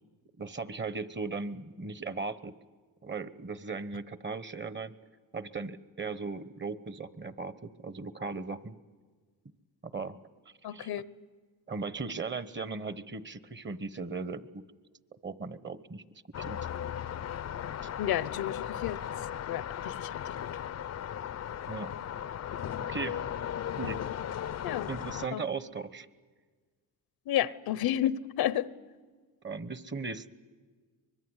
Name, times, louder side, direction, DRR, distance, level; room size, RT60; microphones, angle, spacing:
voice 1, 0.4-2.5 3.0-4.9 5.3-8.7 9.8-10.2 10.7-10.9 11.7-14.6 15.1-16.0 16.4-16.6 21.7-21.9 22.8-23.2 23.8-24.0 24.9-26.1 29.4-30.3, right 4 dB, 30° right, 1.2 m, -37 dB
voice 2, 10.6-11.0 18.0-20.6 24.6-24.9 25.3-25.4 27.3-28.7, left 11 dB, 75° left, 0.9 m, -32 dB
sound 1, 16.3-25.3, left 9 dB, 45° left, 0.6 m, -37 dB
24.5 x 21.5 x 8.2 m
cardioid pair, 80°, 37 cm